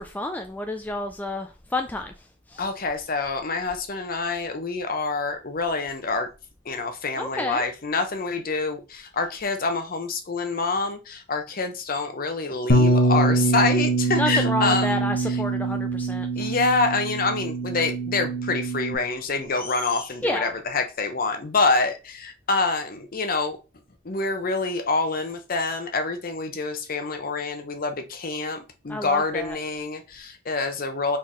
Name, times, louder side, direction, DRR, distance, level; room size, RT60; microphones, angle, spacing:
voice 1, 0.0-2.1 2.5-2.6 7.2-7.6 14.2-16.5 20.2-20.5 28.9-29.6, left 1 dB, 10° left, 0.3 m, -30 dB
voice 2, 2.6-6.3 6.7-15.4 16.4-23.6 24.0-31.2, left 3 dB, 50° left, 0.8 m, -26 dB
Bass guitar, 12.7-18.9, right 2 dB, 75° left, 1.3 m, -23 dB
4.3 x 3.7 x 3.1 m
head